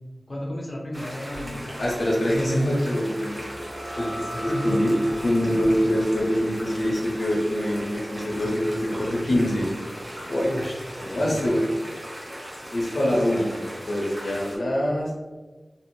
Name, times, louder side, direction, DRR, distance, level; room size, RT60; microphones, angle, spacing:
voice 1, 0.3-1.8 3.9-4.9 5.3-5.7 10.4-11.4 13.0-13.5, equal, 35° left, -3 dB, 0.7 m, -34 dB
sound 1, 0.9-14.6, equal, 35° right, 0.8 m, -38 dB
voice 2, 1.8-3.3 4.0-4.1 4.4-4.9 5.2-9.6 10.2-10.5 11.0-11.6 12.7-15.1, equal, 75° left, -4 dB, 0.6 m, -24 dB
sound 2, 3.3-10.6, right 1 dB, 70° right, 0.8 m, -41 dB
2.8 x 2.0 x 3.0 m, 1.2 s
wide cardioid pair, 65°, 0 cm